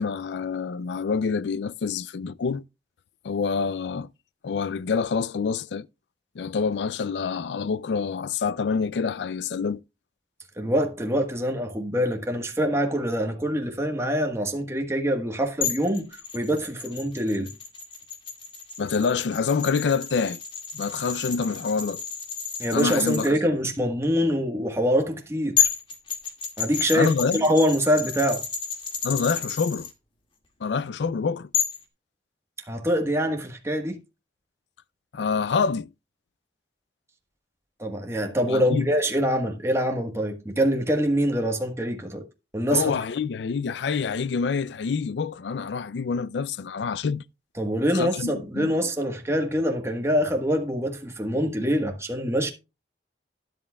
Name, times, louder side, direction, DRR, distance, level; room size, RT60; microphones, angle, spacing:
voice 1, 0.0-2.6 3.2-4.1 4.4-5.9 6.4-9.8 18.8-20.4 20.7-22.0 22.7-23.4 26.9-27.4 29.0-29.9 30.6-31.5 35.1-35.9 38.5-38.9 42.7-47.2 47.9-48.8, left 5 dB, 80° left, 0.4 m, -26 dB
voice 2, 10.6-16.1 16.3-17.5 22.6-25.6 26.6-28.4 32.7-34.0 37.8-42.2 42.5-42.9 47.6-52.5, equal, 15° right, 1.3 m, -24 dB
sound 1, 15.6-23.3 25.2-25.3 25.6-29.9 31.5-31.8, left 8 dB, 30° left, 2.0 m, -31 dB
12.5 x 10.5 x 2.3 m
head